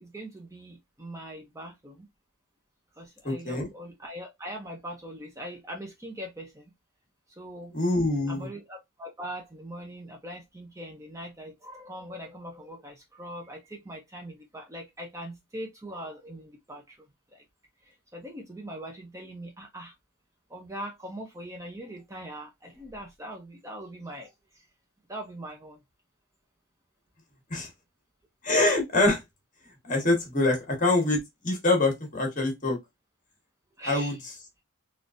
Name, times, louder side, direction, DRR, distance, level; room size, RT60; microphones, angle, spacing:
voice 1, 0.0-2.1 2.9-6.6 7.3-7.7 8.3-17.0 17.3-17.4 17.8-19.9 20.5-24.6 25.1-25.8 28.5-28.6 33.8-34.2, equal, 15° right, 0.5 m, -41 dB
voice 2, 3.2-3.7 7.7-8.5 27.5-27.7 28.4-29.2 29.8-32.8 33.8-34.2, left 2 dB, 35° left, 1.2 m, -25 dB
3.8 x 2.4 x 2.5 m
head